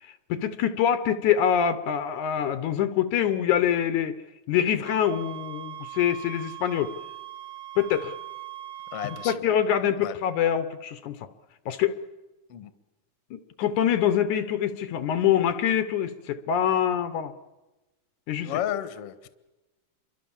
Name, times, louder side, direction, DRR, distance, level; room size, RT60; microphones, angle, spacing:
voice 1, 0.3-4.2 4.5-6.9 7.8-8.1 9.0-11.2 11.7-12.0 13.3-17.3 18.3-18.5, left 9 dB, 70° left, 11 dB, 2.4 m, -25 dB
sound 1, 4.8-9.4, right 14 dB, 50° right, 1.4 m, -40 dB
voice 2, 8.9-9.4 10.0-10.1 12.5-12.7 18.4-19.3, left 11 dB, 55° left, 11 dB, 2.0 m, -32 dB
28.0 x 23.5 x 7.3 m, 1.1 s
omnidirectional pair, 3.7 m